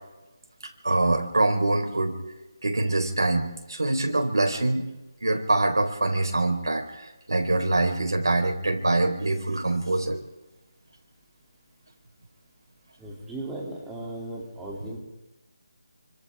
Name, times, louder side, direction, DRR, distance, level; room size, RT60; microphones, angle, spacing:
voice 1, 0.8-2.2 2.6-4.9 5.2-10.2, right 2 dB, 90° right, 3 dB, 4.7 m, -24 dB
voice 2, 13.0-15.0, right 2 dB, 5° right, -4 dB, 3.2 m, -36 dB
28.0 x 25.5 x 3.7 m, 1.0 s
figure-of-eight pair, 170°, 2 cm